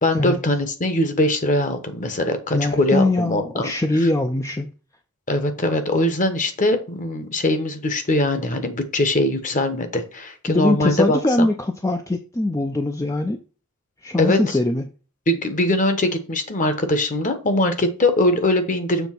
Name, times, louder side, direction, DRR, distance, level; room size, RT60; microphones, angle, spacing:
voice 1, 0.0-3.7 4.0-4.1 5.3-11.5 14.2-14.6 15.3-19.1, left 1 dB, 35° left, 8 dB, 1.1 m, -21 dB
voice 2, 2.5-4.7 10.5-13.4 14.0-14.8, left 2 dB, 15° left, 5 dB, 0.5 m, -22 dB
7.1 x 3.4 x 5.8 m, 0.36 s
head